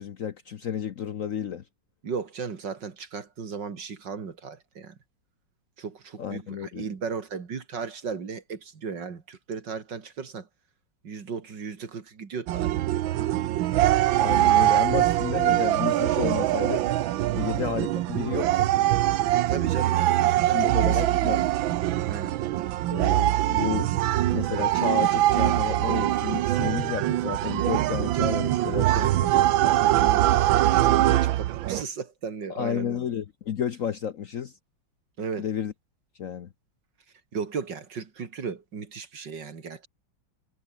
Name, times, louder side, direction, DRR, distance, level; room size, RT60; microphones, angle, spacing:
voice 1, 0.0-1.6 6.2-6.9 14.2-16.9 17.3-18.7 20.5-21.4 22.9-23.9 24.3-29.1 29.3-29.5 32.5-34.5 35.4-35.7 36.2-36.5, left 8 dB, 55° left, 1.0 m, -31 dB
voice 2, 2.0-5.0 5.8-10.5 11.0-13.2 17.3-17.6 19.5-21.1 22.1-22.3 28.9-29.1 29.6-33.0 35.2-35.5 37.3-39.9, right 5 dB, 65° right, 2.9 m, -36 dB
sound 1, 12.5-31.8, right 14 dB, 80° right, 1.5 m, -23 dB
omnidirectional pair, 2.1 m